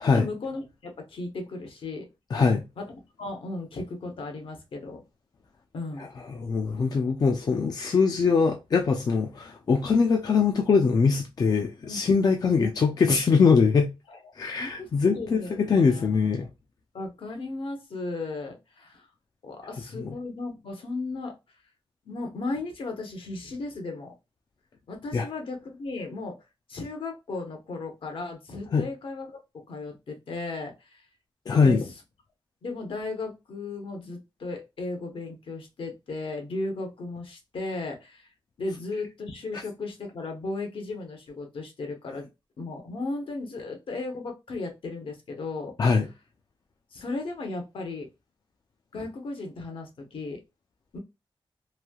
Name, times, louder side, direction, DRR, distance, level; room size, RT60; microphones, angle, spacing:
voice 1, 0.1-2.0 2.8-2.9 3.2-5.0 5.7-6.1 11.8-12.0 12.6-12.7 14.1-14.2 14.6-16.1 16.9-19.0 19.4-21.4 22.1-24.1 24.9-26.4 26.7-31.0 31.6-31.8 32.6-38.3 38.6-42.3 42.6-45.8 46.9-48.1 48.9-50.4 50.9-51.0, left 3 dB, 70° left, 0.9 m, -35 dB
voice 2, 2.3-2.6 6.0-13.9 14.4-16.5 20.0-20.1 25.1-25.3 28.7-28.9 31.5-31.8 45.8-46.1, left 5 dB, 45° left, 0.4 m, -22 dB
3.1 x 2.6 x 2.3 m
wide cardioid pair, 150°, 9 cm